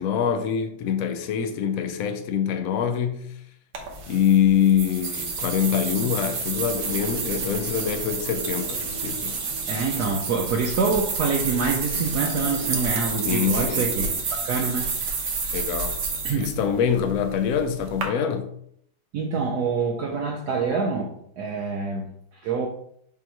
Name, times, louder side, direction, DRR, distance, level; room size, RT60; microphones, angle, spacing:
voice 1, 0.0-3.3 4.1-9.4 13.3-13.9 15.5-16.0 16.4-18.5, left 8 dB, 65° left, 0.9 m, -24 dB
sound 1, 3.7-18.0, right 4 dB, 85° right, 1.8 m, -30 dB
sound 2, 6.5-10.8 11.2-11.3 12.0-14.2, right 1 dB, 15° left, 0.5 m, -40 dB
voice 2, 9.7-14.1 14.4-14.9 16.2-16.4 19.1-22.1 22.4-22.7, right 5 dB, 65° right, 1.1 m, -26 dB
7.0 x 3.0 x 4.6 m
omnidirectional pair, 2.1 m